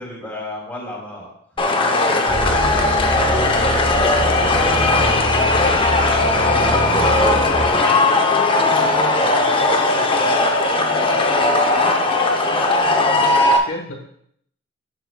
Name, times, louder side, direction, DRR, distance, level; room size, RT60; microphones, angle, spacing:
voice 1, 0.0-1.8 2.1-2.4 3.3-8.0 13.0-13.4, left 1 dB, 10° left, -4 dB, 2.5 m, -33 dB
voice 2, 1.6-2.3 6.5-12.9 13.5-14.1, left 1 dB, 65° left, 0 dB, 1.1 m, -35 dB
sound 1, 1.6-13.6, left 2 dB, 25° left, 0.7 m, -17 dB
sound 2, 2.3-7.7, right 1 dB, 35° right, 1.8 m, -25 dB
10.5 x 7.0 x 2.2 m, 0.67 s
head